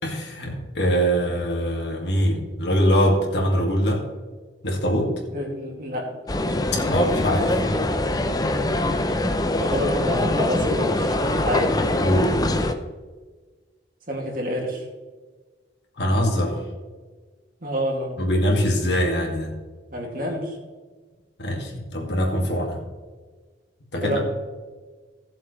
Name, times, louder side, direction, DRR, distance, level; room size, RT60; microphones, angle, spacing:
voice 1, 0.0-4.0 4.6-5.1 6.8-7.6 12.0-12.5 16.0-16.6 18.2-19.5 21.4-22.8 23.9-24.2, equal, 65° left, 0 dB, 2.3 m, -23 dB
voice 2, 5.3-6.1 9.6-11.8 14.1-14.9 17.6-18.2 19.9-20.6 24.0-24.2, equal, 50° right, -1 dB, 2.5 m, -28 dB
sound 1, 6.3-12.7, left 1 dB, 20° left, 0.6 m, -23 dB
17.0 x 7.4 x 3.3 m, 1.4 s
head